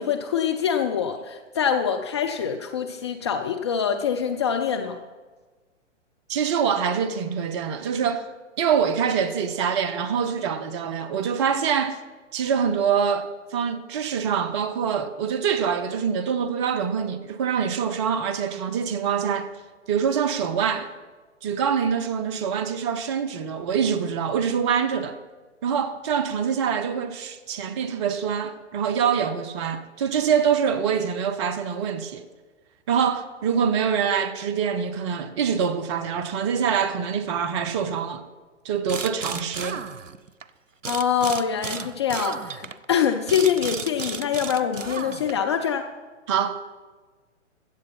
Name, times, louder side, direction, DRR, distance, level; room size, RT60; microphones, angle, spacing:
voice 1, 0.0-5.0 40.9-45.8, left 8 dB, 25° left, 0.4 m, -24 dB
voice 2, 6.3-8.3 8.6-12.0 12.3-19.5 19.9-20.9 21.4-25.2 25.6-32.3 32.9-38.3 38.6-39.8 46.3-46.7, right 7 dB, 25° right, 0.6 m, -25 dB
sound 1, 38.9-40.4 40.8-45.5, right 5 dB, 90° right, 0.6 m, -33 dB
15.0 x 7.8 x 5.8 m
figure-of-eight pair, 120°, 37 cm